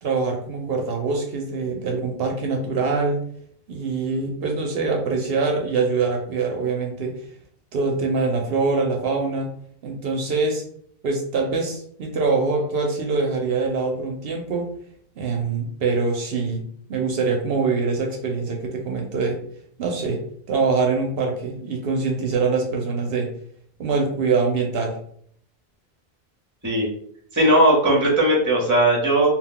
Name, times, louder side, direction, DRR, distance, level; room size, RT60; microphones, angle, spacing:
voice 1, 0.0-3.3 3.7-7.1 7.7-9.5 9.8-10.6 11.0-14.7 15.2-16.6 16.9-19.4 19.8-20.2 20.5-23.3 23.8-25.0, right 4 dB, 70° right, 2 dB, 0.8 m, -24 dB
voice 2, 27.3-29.3, right 1 dB, 20° right, -2 dB, 0.7 m, -18 dB
2.4 x 2.1 x 3.7 m, 0.63 s
omnidirectional pair, 1.0 m